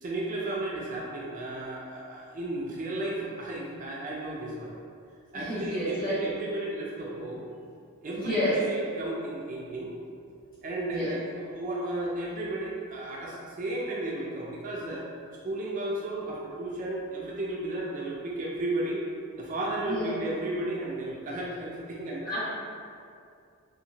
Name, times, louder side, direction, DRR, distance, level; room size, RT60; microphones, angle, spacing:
voice 1, 0.0-4.7 5.3-7.5 8.0-10.0 10.6-15.0 15.4-19.1 19.4-22.2, right 2 dB, 35° right, -4 dB, 0.3 m, -34 dB
voice 2, 5.3-6.2 8.1-8.6 10.8-11.1 19.8-20.1 22.2-22.4, equal, 40° left, -11 dB, 1.2 m, -30 dB
2.8 x 2.4 x 2.6 m, 2.3 s
head